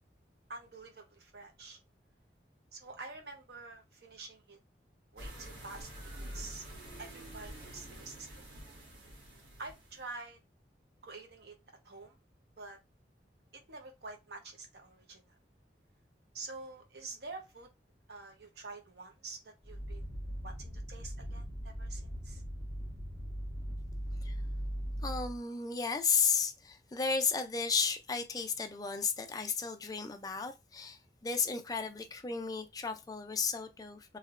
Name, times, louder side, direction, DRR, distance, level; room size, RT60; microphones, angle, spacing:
voice 1, 0.5-1.8 2.7-4.6 5.1-5.9 6.2-6.6 7.0-8.3 9.6-10.4 11.0-11.5 11.8-12.2 12.6-12.8 13.7-15.2 16.3-17.7 18.1-20.1 20.4-22.4, right 3 dB, 65° right, 0.8 m, -47 dB
sound 1, 5.2-10.1, equal, 85° right, 1.4 m, -47 dB
sound 2, 19.6-25.4, equal, 20° right, 1.5 m, -39 dB
voice 2, 25.0-34.2, left 5 dB, 20° left, 0.4 m, -33 dB
3.2 x 2.7 x 2.5 m
head